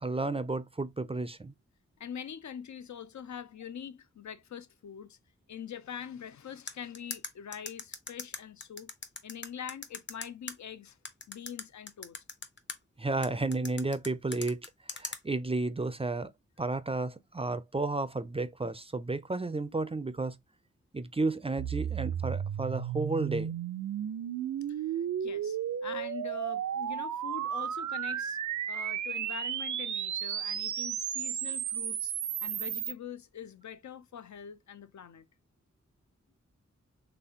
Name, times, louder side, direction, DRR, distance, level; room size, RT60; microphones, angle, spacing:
voice 1, 0.0-1.5 13.0-16.3 16.6-20.4 20.9-23.5, right 3 dB, 20° right, 0.4 m, -32 dB
voice 2, 2.0-5.2 5.5-8.9 9.2-11.0 11.3-12.2 24.7-28.4 28.7-32.1 32.4-35.3, left 8 dB, 75° left, 0.5 m, -44 dB
sound 1, 6.7-10.5 11.0-12.8 13.2-15.2, left 3 dB, 40° left, 0.7 m, -39 dB
sound 2, 21.6-32.9, right 9 dB, 85° right, 0.4 m, -34 dB
4.1 x 3.3 x 2.7 m
wide cardioid pair, 105°, 29 cm